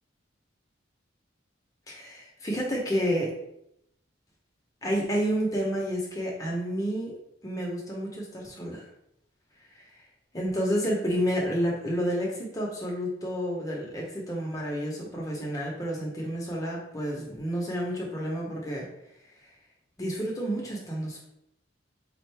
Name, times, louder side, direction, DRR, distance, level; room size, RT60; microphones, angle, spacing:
voice 1, 1.9-3.3 4.8-7.1 7.4-8.8 9.7-9.8 10.3-18.9 20.0-21.2, equal, 15° left, -2 dB, 0.7 m, -30 dB
4.3 x 2.5 x 3.3 m, 0.79 s
head